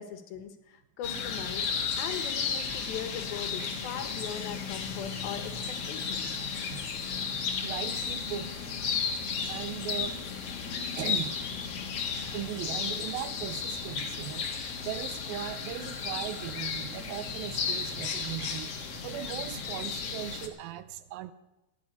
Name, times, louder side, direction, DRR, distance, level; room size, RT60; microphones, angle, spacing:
voice 1, 0.0-6.4, left 8 dB, 75° left, 8 dB, 3.0 m, -40 dB
sound 1, 1.0-20.5, left 6 dB, 50° left, 2.0 m, -34 dB
voice 2, 7.6-8.7 9.5-10.2 11.0-11.4 12.3-14.5 14.8-18.7 19.0-21.3, right 11 dB, 80° right, 13 dB, 2.4 m, -38 dB
15.0 x 7.8 x 9.5 m, 0.95 s
omnidirectional pair, 4.3 m